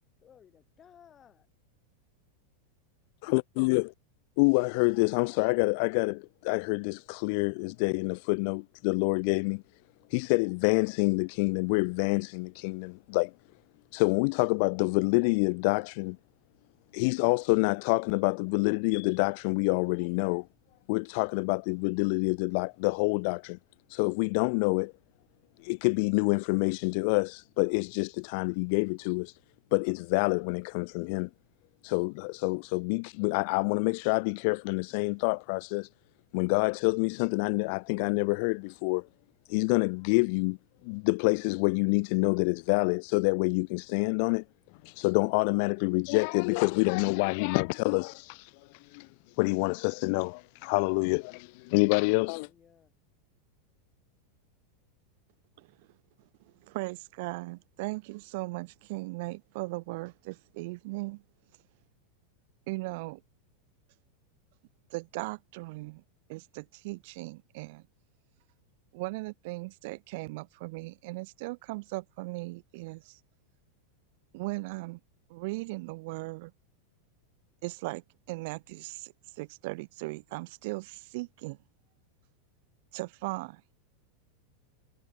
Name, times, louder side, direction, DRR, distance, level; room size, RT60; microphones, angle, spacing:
voice 1, 0.2-1.5 52.0-52.9, left 9 dB, 20° left, 3.1 m, -59 dB
voice 2, 3.2-3.9 4.4-9.6 10.1-13.3 13.9-16.2 16.9-20.5 20.9-23.6 23.9-24.9 25.6-29.3 29.7-31.3 31.8-35.9 36.3-39.1 39.5-40.6 40.8-44.4 44.8-49.1 49.4-52.5, left 33 dB, 45° left, 0.3 m, -27 dB
voice 3, 56.6-61.2 62.7-63.2 64.9-66.0 66.3-67.8 68.9-73.2 74.3-75.0 75.3-76.5 77.6-81.6 82.9-83.6, right 24 dB, 50° right, 1.9 m, -38 dB
supercardioid pair, 165°, 0 cm